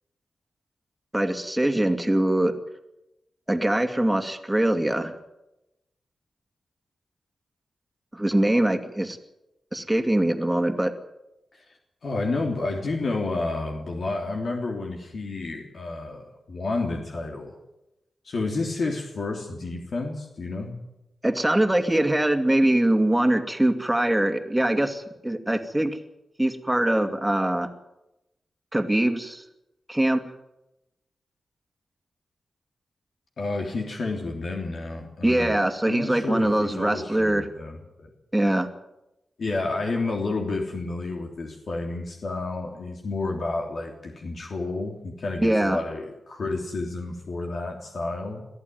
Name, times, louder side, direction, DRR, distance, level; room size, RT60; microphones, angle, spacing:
voice 1, 1.1-2.5 3.5-5.1 8.1-9.2 9.7-10.9 21.2-25.9 26.4-27.7 28.7-29.4 29.9-30.2 35.2-37.4 38.3-38.7 45.4-45.8, right 1 dB, 10° right, 6 dB, 2.4 m, -23 dB
voice 2, 11.5-17.5 18.2-20.7 33.4-35.6 35.9-37.8 39.4-48.4, left 3 dB, 65° left, 1 dB, 3.3 m, -30 dB
22.5 x 14.5 x 9.4 m, 0.93 s
cardioid pair, 80°, 0 cm